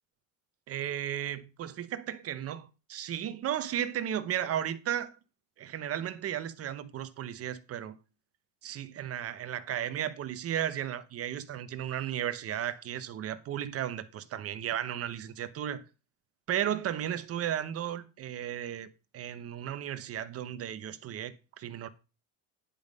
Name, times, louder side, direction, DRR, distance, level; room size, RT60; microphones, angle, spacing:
voice 1, 0.7-5.1 5.6-8.0 8.6-15.8 16.5-21.9, right 10 dB, 40° right, 1.0 m, -34 dB
10.0 x 5.4 x 5.3 m
cardioid pair, 130°, 37 cm